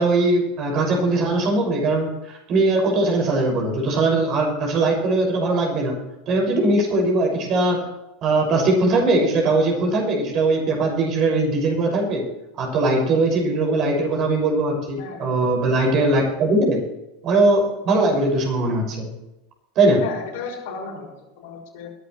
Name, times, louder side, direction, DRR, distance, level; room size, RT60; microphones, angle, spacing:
voice 1, 0.0-7.8 8.2-12.2 12.6-16.8 17.2-19.1 19.8-20.0, right 2 dB, 45° right, 1 dB, 6.3 m, -20 dB
voice 2, 15.0-15.5 20.0-21.9, left 5 dB, 65° left, -1 dB, 6.1 m, -35 dB
22.0 x 11.5 x 3.3 m, 0.94 s
figure-of-eight pair, 85°, 0 cm